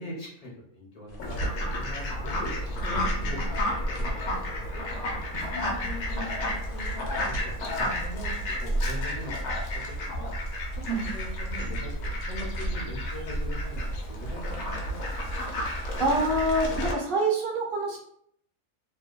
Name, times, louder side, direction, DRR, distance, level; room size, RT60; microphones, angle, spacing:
voice 1, 0.0-1.5 1.7-2.5 2.9-8.3 8.6-9.8 10.2-10.3 10.9-15.3, left 1 dB, 45° left, -4 dB, 0.5 m, -42 dB
sound 1, 1.1-16.9, right 1 dB, 85° left, 1.1 m, -37 dB
Fowl, 1.2-16.9, left 1 dB, 65° left, 0.8 m, -32 dB
voice 2, 3.2-3.5 5.4-5.9 10.9-11.1 15.6-18.0, right 2 dB, 50° right, -2 dB, 0.8 m, -28 dB
2.7 x 2.1 x 2.3 m, 0.68 s
omnidirectional pair, 1.4 m